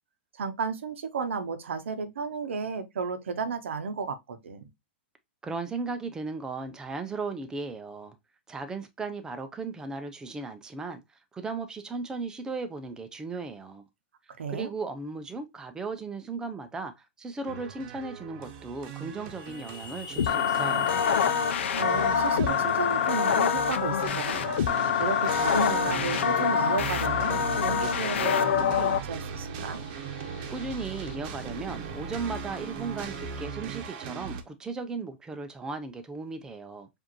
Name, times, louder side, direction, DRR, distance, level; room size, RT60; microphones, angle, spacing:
voice 1, 0.4-4.7 14.4-14.7 21.8-24.6 25.0-28.5 28.8-29.8, right 5 dB, 90° right, 0.8 m, -33 dB
voice 2, 5.4-8.1 8.5-11.0 11.3-13.8 14.5-21.1 30.5-36.9, right 4 dB, 10° right, 0.5 m, -36 dB
sound 1, 17.5-34.4, right 7 dB, 45° right, 0.9 m, -39 dB
sound 2, 19.3-22.7 23.2-24.3 25.4-33.5, left 8 dB, 50° left, 0.8 m, -46 dB
sound 3, 20.2-29.0, left 7 dB, 75° left, 0.5 m, -25 dB
4.9 x 2.6 x 2.9 m
hypercardioid pair, 145°, 6 cm